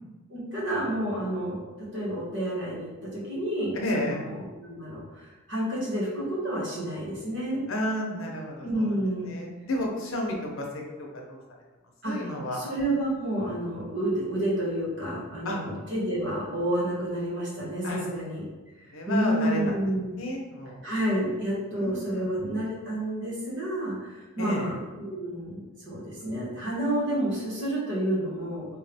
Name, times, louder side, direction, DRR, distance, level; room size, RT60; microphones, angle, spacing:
voice 1, 0.3-1.6 1.9-7.6 8.6-9.3 12.0-12.2 12.5-18.4 19.1-20.0 20.8-28.7, right 1 dB, 60° right, -6 dB, 1.4 m, -30 dB
voice 2, 3.8-4.2 7.7-8.7 9.2-10.7 11.3-11.4 12.0-12.6 15.4-15.6 17.8-18.0 18.9-19.8 20.2-20.8 21.7-22.3 24.4-24.7, left 1 dB, 80° left, 0 dB, 0.8 m, -31 dB
3.4 x 3.1 x 3.4 m, 1.2 s
head